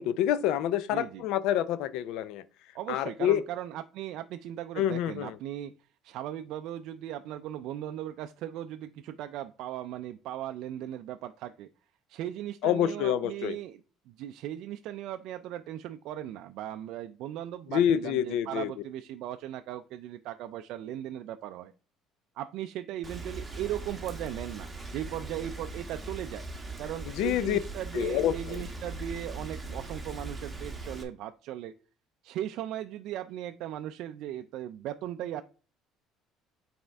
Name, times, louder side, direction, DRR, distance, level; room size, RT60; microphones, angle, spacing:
voice 1, 0.0-2.4 2.9-3.4 4.8-5.3 12.6-13.5 17.7-18.7 27.2-27.6 27.9-28.6, left 10 dB, 70° left, 0.4 m, -27 dB
voice 2, 0.9-1.2 2.7-5.7 6.0-11.7 12.1-21.7 22.4-26.5 26.8-31.7 32.2-35.4, right 12 dB, 65° right, 0.3 m, -38 dB
Rain, 23.0-31.0, right 3 dB, 10° right, 1.1 m, -40 dB
8.9 x 4.3 x 3.4 m
cardioid pair, 160°, 0 cm